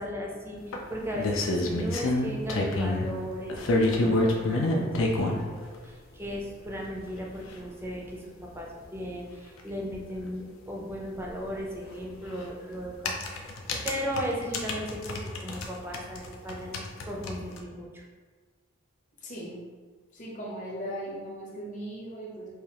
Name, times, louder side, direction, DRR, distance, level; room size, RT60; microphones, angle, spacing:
voice 1, 0.0-3.5 3.9-13.4 13.8-18.0, equal, 10° right, -2 dB, 0.5 m, -36 dB
sound 1, 0.7-3.1 3.5-5.4 6.3-6.4 6.8-6.9 7.2-7.3 7.5-7.6 9.6-9.7 9.9-10.0 12.0-12.2 12.8-15.7 15.9-17.6, left 2 dB, 70° left, 0.5 m, -27 dB
voice 2, 19.2-19.6 20.1-22.5, equal, 35° left, -5 dB, 0.8 m, -38 dB
4.8 x 2.3 x 2.9 m, 1.5 s
head